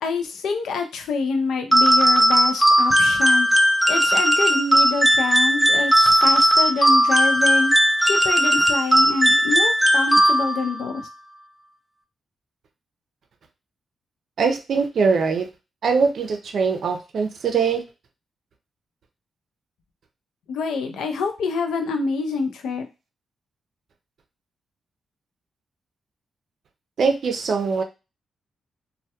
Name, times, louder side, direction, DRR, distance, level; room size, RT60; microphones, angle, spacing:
voice 1, 0.0-3.5 3.9-7.7 8.0-11.1 20.5-22.9, left 4 dB, 90° left, 6 dB, 0.4 m, -26 dB
sound 1, 1.7-10.7, right 1 dB, 5° right, 0.3 m, -17 dB
voice 2, 14.4-15.5 15.8-17.8 27.0-27.8, right 5 dB, 70° right, 5 dB, 0.4 m, -22 dB
2.2 x 2.2 x 2.8 m, 0.28 s
cardioid pair, 65°, 0 cm